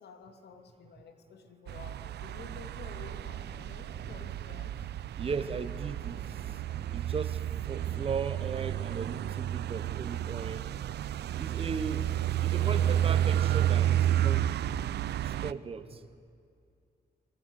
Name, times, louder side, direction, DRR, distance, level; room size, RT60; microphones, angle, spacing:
voice 1, 0.0-4.9 6.6-7.1 15.9-16.0, left 6 dB, 80° left, 7 dB, 2.8 m, -51 dB
sound 1, 1.7-15.5, right 11 dB, 85° right, 0.6 m, -31 dB
sound 2, 2.3-15.1, right 3 dB, 65° right, 5.5 m, -51 dB
voice 2, 5.2-6.2 6.9-7.4 7.7-10.6 11.3-12.0 12.4-14.5 15.2-16.0, right 5 dB, 35° right, 12 dB, 1.2 m, -37 dB
28.5 x 20.5 x 9.9 m, 2.4 s
wide cardioid pair, 170°, 17 cm